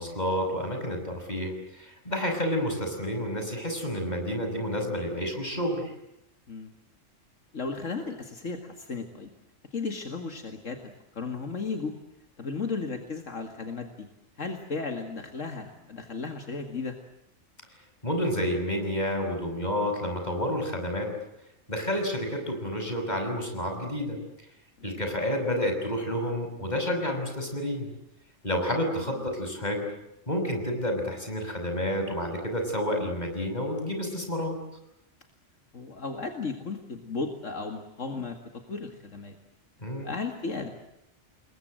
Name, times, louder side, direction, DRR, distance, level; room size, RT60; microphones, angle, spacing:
voice 1, 0.0-5.9 18.0-21.1 21.7-24.2 24.8-27.9 28.4-29.8 30.3-34.5 39.8-40.1, equal, 30° left, 4 dB, 6.4 m, -30 dB
voice 2, 7.5-9.3 9.7-11.9 12.4-14.1 14.4-17.0 24.8-25.0 35.7-38.4 38.7-39.4 40.0-40.7, left 4 dB, 70° left, 5 dB, 2.4 m, -35 dB
29.5 x 22.0 x 7.7 m, 0.83 s
omnidirectional pair, 1.3 m